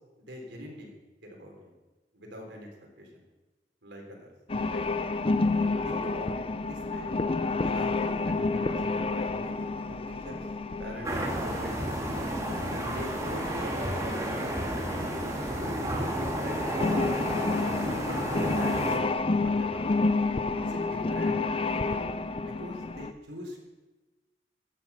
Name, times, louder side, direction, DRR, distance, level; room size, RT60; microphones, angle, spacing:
voice 1, 0.2-0.9 1.2-1.7 2.1-2.7 3.0-3.2 3.8-4.3 4.7-4.8 5.8-10.4 10.8-11.9 12.7-14.8 15.5-17.5 18.0-19.0 19.2-19.9 20.5-21.5 21.9-22.1 22.4-23.7, equal, 75° right, 1 dB, 3.6 m, -43 dB
sound 1, 4.5-23.1, left 3 dB, 30° left, 0.5 m, -30 dB
sound 2, 11.0-19.0, right 1 dB, 20° right, 2.3 m, -32 dB
15.5 x 10.0 x 5.7 m, 1.2 s
head